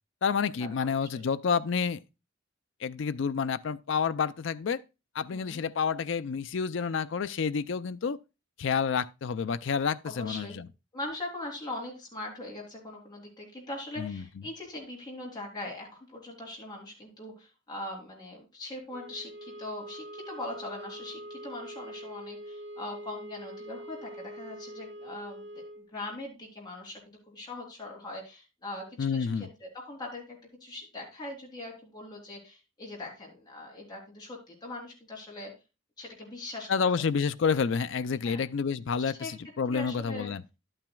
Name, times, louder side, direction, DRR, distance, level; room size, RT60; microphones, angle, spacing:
voice 1, 0.2-2.0 2.8-4.8 5.1-8.2 8.6-10.7 14.0-14.2 29.0-29.5 36.7-40.4, left 6 dB, 65° left, 0.4 m, -29 dB
voice 2, 5.3-5.6 10.0-10.6 10.9-25.5 25.8-35.5 36.0-36.9 38.2-38.5 39.2-39.3 39.7-40.3, left 2 dB, 20° left, 3.5 m, -41 dB
sound 1, 18.9-25.9, right 1 dB, 65° right, 2.2 m, -44 dB
11.5 x 8.9 x 2.3 m
head